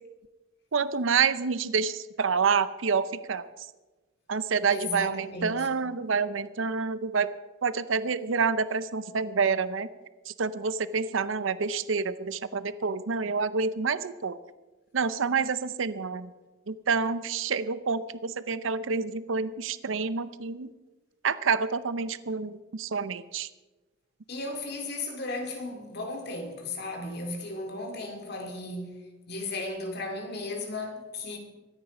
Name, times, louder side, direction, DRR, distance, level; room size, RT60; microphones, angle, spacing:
voice 1, 0.7-3.4 4.3-7.3 7.6-9.9 10.3-14.4 14.9-16.3 16.7-20.7 21.2-23.5, right 5 dB, 75° right, 0.6 m, -28 dB
voice 2, 4.7-5.7 24.3-31.4, left 2 dB, 55° left, 2.4 m, -35 dB
23.5 x 9.6 x 5.0 m
head